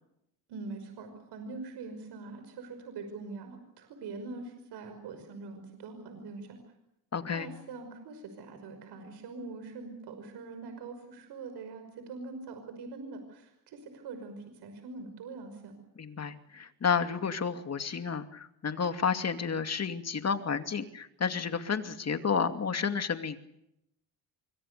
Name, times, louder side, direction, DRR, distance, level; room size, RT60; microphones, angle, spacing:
voice 1, 0.5-6.6 7.3-15.7, right 3 dB, 80° right, 7 dB, 5.7 m, -43 dB
voice 2, 7.1-7.5 16.0-23.4, left 6 dB, 40° left, 8 dB, 2.5 m, -31 dB
26.0 x 24.5 x 6.9 m, 0.81 s
cardioid pair, 90°, 39 cm